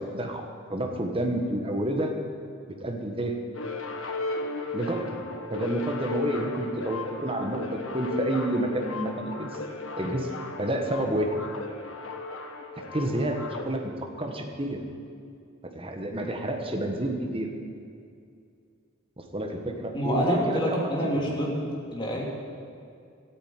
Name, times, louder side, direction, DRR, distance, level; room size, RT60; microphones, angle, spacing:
voice 1, 0.0-2.1 2.8-3.4 4.7-5.2 5.5-9.5 10.0-10.3 10.6-11.3 12.8-14.8 15.7-17.5 19.2-21.2, right 1 dB, 25° right, 3 dB, 1.4 m, -29 dB
sound 1, 3.5-13.6, left 3 dB, 80° left, 1.3 m, -35 dB
voice 2, 19.9-22.2, equal, 25° left, -3 dB, 3.0 m, -27 dB
13.5 x 9.3 x 9.3 m, 2.4 s
head